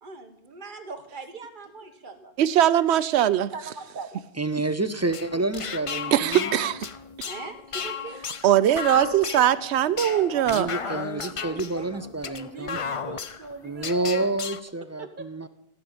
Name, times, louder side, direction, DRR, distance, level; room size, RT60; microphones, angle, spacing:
voice 1, 0.0-2.3 3.5-4.2 7.2-8.2 10.1-14.3 15.0-15.3, right 3 dB, 50° right, 6 dB, 1.4 m, -41 dB
voice 2, 2.4-3.5 6.1-6.9 8.4-10.7, right 11 dB, 85° right, 16 dB, 0.9 m, -21 dB
voice 3, 4.4-6.6 10.5-12.8 13.6-15.5, right 2 dB, 25° right, 11 dB, 0.4 m, -29 dB
sound 1, 5.0-14.6, left 6 dB, 40° left, 0.5 m, -34 dB
15.5 x 5.4 x 8.8 m, 0.82 s
omnidirectional pair, 1.1 m